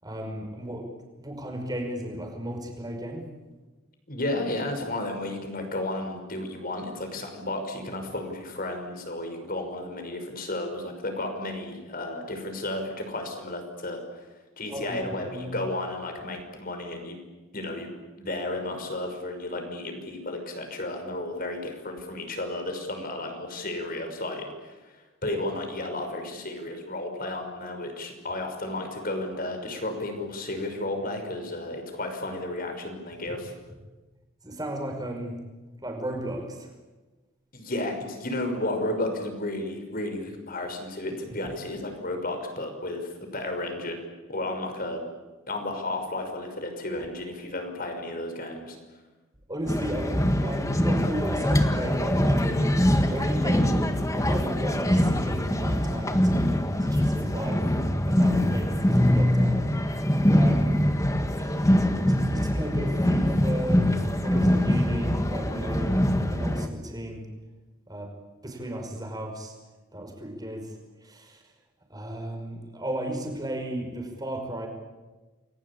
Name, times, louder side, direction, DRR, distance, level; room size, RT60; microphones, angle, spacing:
voice 1, 0.0-0.9 1.2-3.3 14.7-15.6 34.4-35.5 35.8-36.7 49.5-57.7 58.1-59.7 60.3-60.8 61.3-63.9 64.2-66.0 66.3-67.3 67.9-68.1 68.4-69.5 69.9-71.4 71.9-74.7, right 1 dB, 20° right, 3 dB, 5.5 m, -34 dB
voice 2, 4.1-14.2 14.6-17.2 17.5-17.9 18.2-25.0 25.2-33.5 37.5-44.0 44.3-45.0 45.5-48.8, left 1 dB, 45° left, 5 dB, 5.7 m, -33 dB
sound 1, 49.7-66.7, equal, 15° left, 1.7 m, -23 dB
29.5 x 22.0 x 8.7 m, 1.2 s
head